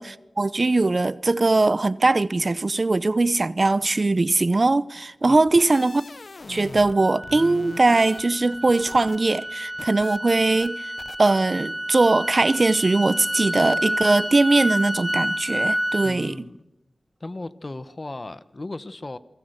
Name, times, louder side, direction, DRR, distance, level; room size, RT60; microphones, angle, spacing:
voice 1, 0.0-6.0 6.5-10.8 11.2-16.3, right 2 dB, 45° right, 0.8 m, -21 dB
sound 1, 5.3-7.0 7.2-9.2 9.5-10.2 10.6-10.7 11.0-11.2, left 3 dB, 60° left, 1.0 m, -40 dB
sound 2, 7.0-16.1, equal, 5° right, 2.9 m, -29 dB
voice 2, 16.0-16.6 17.2-19.2, left 2 dB, 40° left, 1.2 m, -36 dB
28.0 x 22.5 x 6.6 m
cardioid pair, 50°, 0 cm